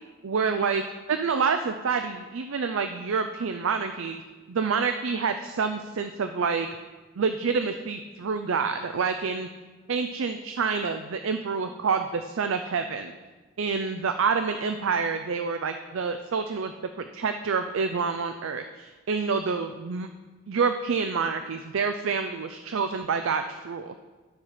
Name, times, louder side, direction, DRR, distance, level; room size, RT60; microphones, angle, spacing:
voice 1, 0.2-0.8 1.1-4.2 4.5-6.7 7.2-9.5 9.9-13.1 13.6-16.7 17.0-20.1 20.5-23.9, right 5 dB, 70° right, 8 dB, 0.5 m, -27 dB
12.5 x 4.5 x 5.8 m, 1.3 s
head